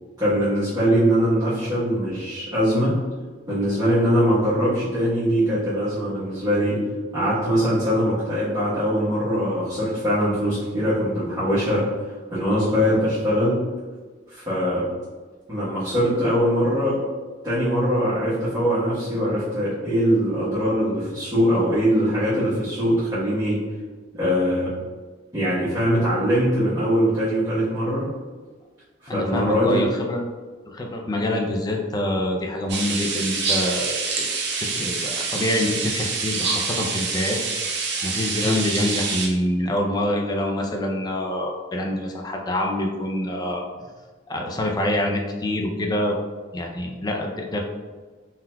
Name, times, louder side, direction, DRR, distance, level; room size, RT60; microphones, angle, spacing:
voice 1, 0.2-3.0 3.5-6.8 7.1-11.9 12.3-13.6 14.3-14.9 15.5-17.0 17.4-23.6 24.1-24.7 25.3-28.1 29.1-29.8 38.4-38.5, equal, 20° right, -14 dB, 1.1 m, -22 dB
voice 2, 29.1-30.2 30.7-34.3 34.6-37.4 37.7-43.6 44.3-46.2 46.5-47.6, left 1 dB, 20° left, 1 dB, 0.3 m, -26 dB
sound 1, 32.7-39.3, right 4 dB, 60° right, 0.6 m, -26 dB
3.7 x 2.8 x 2.2 m, 1.4 s
head